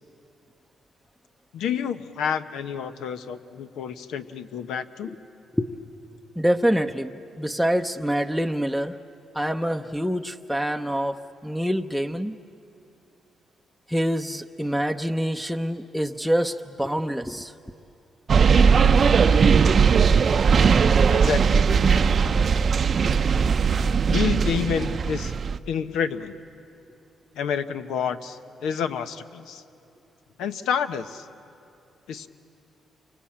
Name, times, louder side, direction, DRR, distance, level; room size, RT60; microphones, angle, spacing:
voice 1, 1.5-5.2 21.1-21.7 22.3-22.4 24.1-25.3 25.7-26.4 27.3-29.6 30.4-31.3 32.1-32.3, left 7 dB, 85° left, 10 dB, 0.9 m, -29 dB
voice 2, 6.4-9.0 9.3-12.4 13.9-17.7, equal, ahead, 6 dB, 0.7 m, -26 dB
sound 1, 18.3-25.6, right 6 dB, 45° right, 0.6 m, -19 dB
28.5 x 24.0 x 8.6 m, 2.7 s
cardioid pair, 100°, 0 cm